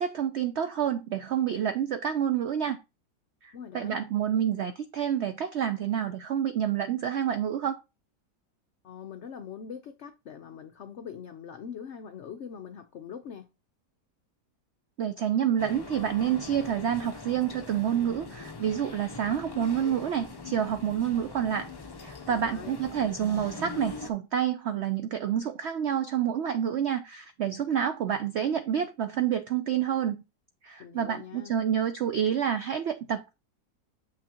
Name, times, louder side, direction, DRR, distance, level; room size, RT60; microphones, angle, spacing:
voice 1, 0.0-2.8 3.4-7.8 15.0-21.7 22.0-30.2 30.6-33.3, right 9 dB, 80° right, 0.6 m, -28 dB
voice 2, 3.5-4.0 8.8-13.5 22.3-22.7 30.8-31.5, left 7 dB, 65° left, 0.7 m, -42 dB
sound 1, 15.6-24.1, left 3 dB, 35° left, 0.3 m, -42 dB
7.1 x 6.0 x 2.8 m
omnidirectional pair, 1.8 m